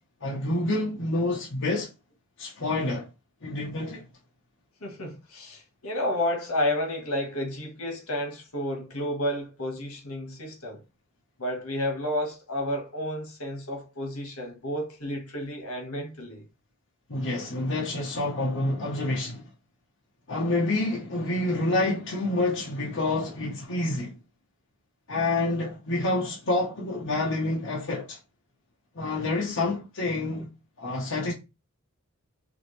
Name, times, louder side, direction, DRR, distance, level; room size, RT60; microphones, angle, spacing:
voice 1, 0.2-1.9 2.4-3.1 3.4-4.0 17.1-19.5 20.3-24.1 25.1-28.2 28.9-30.5 30.8-31.3, left 2 dB, 60° left, 1.1 m, -28 dB
voice 2, 4.8-10.8 11.4-16.4, left 1 dB, 80° left, 1.7 m, -31 dB
4.9 x 3.0 x 3.2 m
head